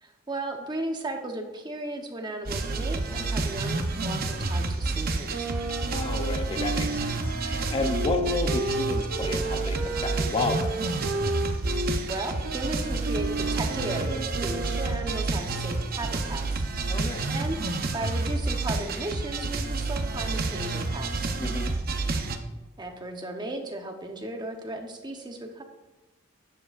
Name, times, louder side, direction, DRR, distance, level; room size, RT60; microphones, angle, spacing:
voice 1, 0.0-5.5 12.1-16.6 17.3-17.6 17.9-21.3 22.8-25.6, right 1 dB, 20° right, 3 dB, 0.9 m, -35 dB
sound 1, 2.5-22.4, right 3 dB, 50° right, 0.7 m, -29 dB
sound 2, 5.3-12.0 12.4-15.4, right 1 dB, 80° right, 0.9 m, -33 dB
voice 2, 5.9-10.7 16.9-17.3 21.4-21.7, left 3 dB, 30° left, 5 dB, 0.6 m, -31 dB
11.0 x 7.7 x 2.5 m, 1.1 s
head